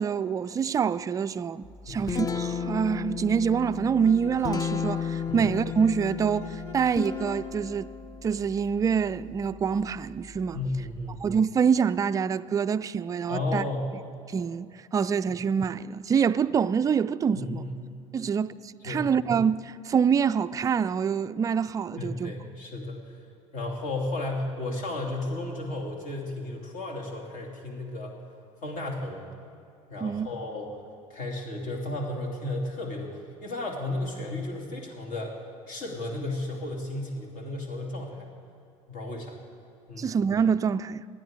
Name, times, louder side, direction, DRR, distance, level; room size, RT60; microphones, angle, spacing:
voice 1, 0.0-7.9 8.2-10.6 11.2-13.7 14.3-17.6 18.1-22.3 30.0-30.3 40.0-41.1, right 6 dB, 20° right, 0.3 m, -26 dB
Guitar, 1.6-11.4, left 6 dB, 20° left, 0.6 m, -35 dB
Bowed string instrument, 4.0-7.6, equal, 80° left, 1.2 m, -46 dB
voice 2, 10.5-11.1 13.3-13.9 17.3-17.9 18.8-19.1 22.0-23.2 23.5-28.1 28.6-29.3 29.9-30.8 31.1-35.4 35.7-38.3 38.9-39.4 39.9-40.2, left 2 dB, 55° left, 2.7 m, -33 dB
19.5 x 12.5 x 3.8 m
hypercardioid pair, 70°, 17 cm